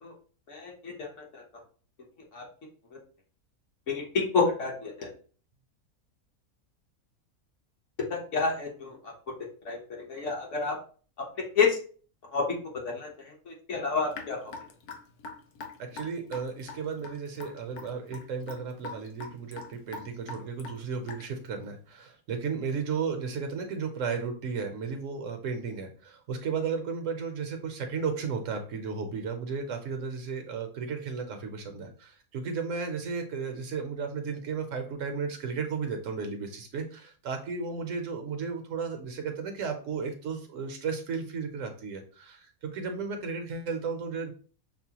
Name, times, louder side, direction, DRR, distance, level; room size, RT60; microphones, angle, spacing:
voice 1, 0.5-1.1 1.3-1.4 2.3-2.4 3.9-5.1 8.1-9.1 9.6-9.8 10.1-10.7 11.5-11.8 12.3-12.4 12.8-14.5, left 4 dB, 55° left, -1 dB, 1.3 m, -29 dB
Raindrop / Drip, 14.1-21.5, left 3 dB, 85° left, 1.2 m, -43 dB
voice 2, 15.8-44.3, right 5 dB, 65° right, 5 dB, 0.9 m, -34 dB
6.0 x 2.1 x 2.8 m, 0.41 s
omnidirectional pair, 1.5 m